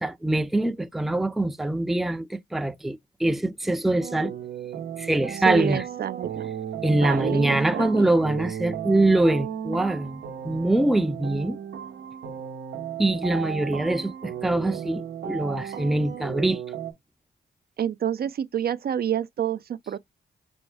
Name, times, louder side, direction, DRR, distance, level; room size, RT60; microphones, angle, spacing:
voice 1, 0.0-4.4 5.0-5.8 6.8-11.6 13.0-16.6, right 2 dB, ahead, 0.4 m, -24 dB
sound 1, 4.0-16.9, right 9 dB, 90° right, 0.8 m, -35 dB
voice 2, 5.4-6.5 6.9-8.1 17.8-20.0, right 9 dB, 55° right, 0.4 m, -28 dB
5.2 x 2.2 x 3.4 m
cardioid pair, 70°, 19 cm